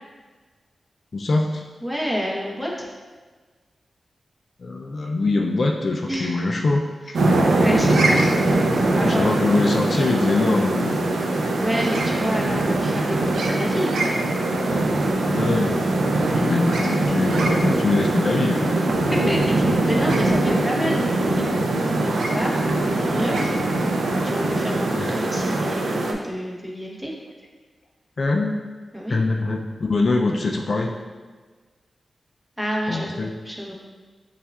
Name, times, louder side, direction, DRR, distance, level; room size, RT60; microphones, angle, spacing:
voice 1, 1.1-1.6 4.6-6.8 9.0-11.0 15.2-15.8 16.3-18.8 25.0-25.1 28.2-28.6 29.1-30.9 32.9-33.3, left 3 dB, 55° left, 1 dB, 0.3 m, -23 dB
voice 2, 1.8-2.9 6.1-6.5 7.1-8.2 8.4-9.3 11.6-14.2 19.1-23.5 24.2-27.1 28.9-29.2 32.6-33.7, equal, 5° right, -4 dB, 0.9 m, -29 dB
sound 1, 7.1-26.1, right 2 dB, 90° right, 0.4 m, -22 dB
6.8 x 2.4 x 2.3 m, 1.4 s
cardioid pair, 65°, 0 cm